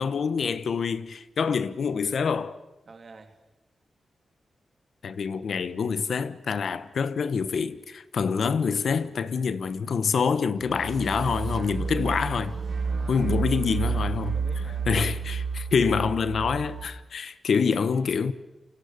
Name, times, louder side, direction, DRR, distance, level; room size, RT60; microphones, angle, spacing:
voice 1, 0.0-2.6 5.0-12.5 13.1-14.3 14.9-18.3, left 6 dB, 70° left, 1.1 m, -26 dB
voice 2, 2.9-3.3 12.8-13.4 13.9-14.9, right 4 dB, 55° right, 3.2 m, -47 dB
sound 1, 10.6-16.8, right 5 dB, 75° right, 4.6 m, -30 dB
28.5 x 25.0 x 6.8 m
cardioid pair, 60°, 0 cm